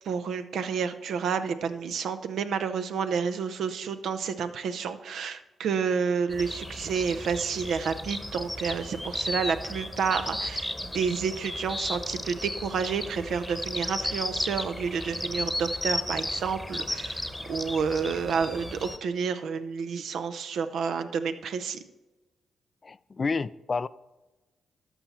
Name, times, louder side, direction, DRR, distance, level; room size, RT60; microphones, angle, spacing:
voice 1, 0.0-21.8, right 6 dB, 70° right, 10 dB, 0.6 m, -30 dB
sound 1, 6.3-19.0, left 1 dB, 10° left, 1.0 m, -34 dB
voice 2, 22.8-23.9, left 4 dB, 40° left, 18 dB, 0.3 m, -30 dB
12.5 x 5.7 x 4.2 m, 1.1 s
hypercardioid pair, 45°, 0 cm